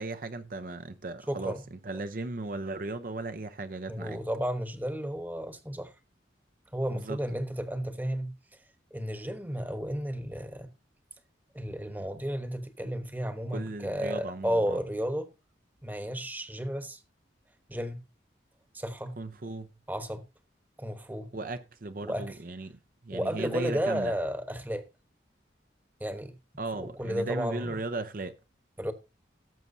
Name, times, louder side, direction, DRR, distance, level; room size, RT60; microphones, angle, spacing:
voice 1, 0.0-4.2 6.9-7.2 13.5-14.8 19.2-19.7 21.3-22.8 23.0-24.1 26.6-28.3, right 2 dB, 50° right, 0.6 m, -36 dB
voice 2, 1.3-1.6 3.9-5.9 6.7-8.3 8.9-10.7 11.5-15.3 15.8-17.0 17.7-18.0 18.7-19.2 19.9-20.2 20.8-21.3 22.0-22.4 23.1-24.8 26.0-26.3 26.8-27.8 28.8-28.9, equal, 10° right, 1.1 m, -33 dB
18.0 x 7.3 x 2.7 m
head